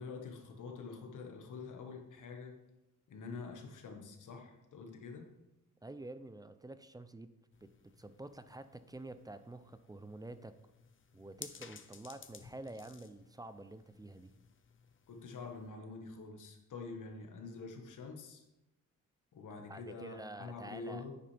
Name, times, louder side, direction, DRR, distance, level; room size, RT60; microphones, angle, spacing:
voice 1, 0.0-2.5 3.1-5.3 15.1-18.4 19.3-21.1, left 4 dB, 65° left, 3 dB, 1.5 m, -46 dB
voice 2, 5.8-7.3 7.6-7.7 8.0-10.5 11.1-14.3 19.7-21.0, right 2 dB, 10° right, 11 dB, 0.4 m, -48 dB
sound 1, 7.5-15.7, left 7 dB, 40° left, 0.7 m, -57 dB
10.0 x 9.3 x 3.4 m, 0.95 s
cardioid pair, 135°, 33 cm